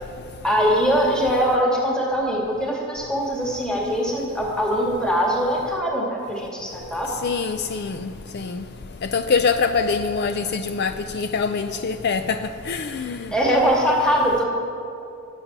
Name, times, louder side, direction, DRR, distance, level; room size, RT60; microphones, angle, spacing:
voice 1, 0.4-7.1 13.1-14.4, equal, 5° left, -3 dB, 2.1 m, -22 dB
voice 2, 7.2-8.1 8.3-8.6 9.1-12.4 12.7-13.2, left 5 dB, 50° left, 8 dB, 0.5 m, -24 dB
17.5 x 8.2 x 6.1 m, 2.6 s
head